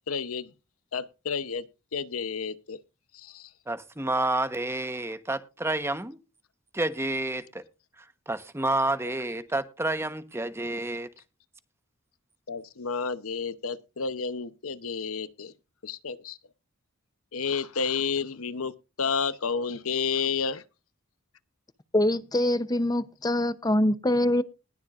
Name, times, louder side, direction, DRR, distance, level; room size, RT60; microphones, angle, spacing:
voice 1, 0.1-0.5 0.9-1.7 1.9-2.8 3.1-3.5 12.5-15.5 15.8-16.4 17.3-20.6, left 5 dB, 90° left, 0.9 m, -31 dB
voice 2, 3.7-6.2 6.7-7.4 8.3-11.1, right 2 dB, 10° right, 1.1 m, -29 dB
voice 3, 21.9-24.4, left 1 dB, 20° left, 0.8 m, -24 dB
20.0 x 7.2 x 2.5 m
head